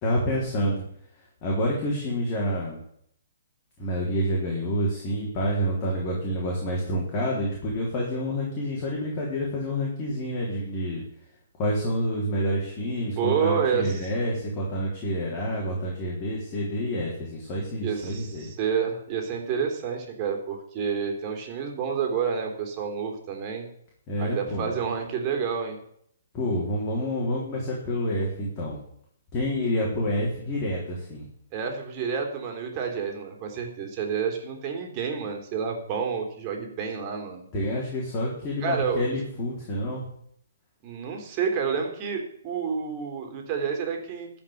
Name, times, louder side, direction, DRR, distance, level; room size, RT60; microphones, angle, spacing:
voice 1, 0.0-0.8 1.4-2.8 3.8-11.0 11.6-18.5 24.1-24.7 26.3-28.8 29.3-31.2 37.5-40.1, equal, 30° left, -4 dB, 4.0 m, -28 dB
voice 2, 13.2-14.1 17.8-23.7 24.2-25.8 31.5-37.5 38.6-39.0 40.8-44.3, right 6 dB, 30° right, 3 dB, 3.3 m, -29 dB
13.5 x 5.6 x 9.2 m, 0.68 s
figure-of-eight pair, 130°, 0 cm